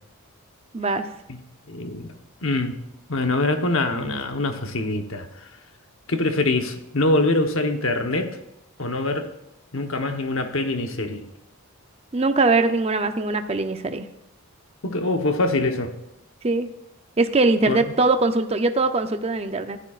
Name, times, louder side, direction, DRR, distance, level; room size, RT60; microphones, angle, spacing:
voice 1, 0.7-1.1 12.1-14.1 16.4-16.7 17.2-19.8, right 3 dB, 30° right, 8 dB, 0.6 m, -21 dB
voice 2, 1.7-2.1 2.4-2.8 3.1-5.3 6.1-8.4 8.8-9.3 9.7-11.2 14.8-15.9 17.7-17.9, left 2 dB, 65° left, 6 dB, 1.1 m, -24 dB
14.5 x 11.5 x 2.5 m, 0.89 s
head